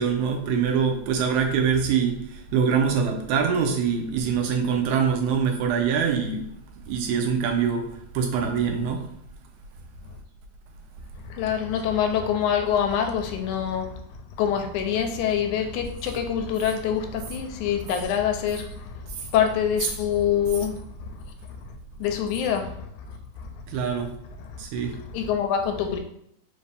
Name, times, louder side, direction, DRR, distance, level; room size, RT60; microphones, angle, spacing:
voice 1, 0.0-6.5 6.9-7.9 8.1-9.0 23.7-24.1 24.6-24.9, right 6 dB, 80° right, 2 dB, 2.0 m, -24 dB
voice 2, 11.2-14.0 14.4-19.0 19.3-21.3 21.7-21.8 22.0-23.5 24.4-26.0, left 8 dB, 85° left, 5 dB, 2.0 m, -26 dB
5.0 x 2.7 x 3.4 m, 0.71 s
omnidirectional pair, 3.4 m